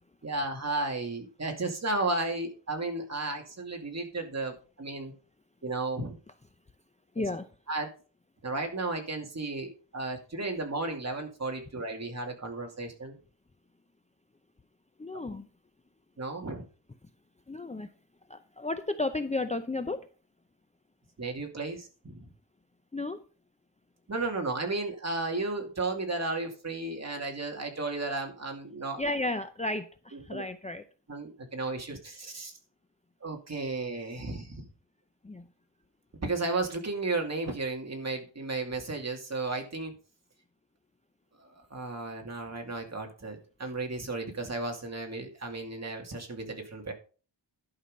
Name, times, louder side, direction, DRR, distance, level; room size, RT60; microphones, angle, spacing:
voice 1, 0.2-5.1 5.6-6.2 7.2-7.3 7.7-7.9 8.4-13.1 16.2-16.7 21.2-22.3 24.1-29.0 30.1-30.4 31.1-32.5 33.2-34.7 36.2-39.9 41.4-46.9, right 2 dB, 35° right, 3 dB, 2.4 m, -34 dB
voice 2, 7.1-7.5 15.0-15.5 17.5-17.9 18.3-20.1 22.9-23.2 29.0-30.8 35.2-35.5, left 2 dB, 15° left, 8 dB, 0.5 m, -33 dB
11.5 x 5.6 x 5.3 m, 0.37 s
wide cardioid pair, 125°, 43 cm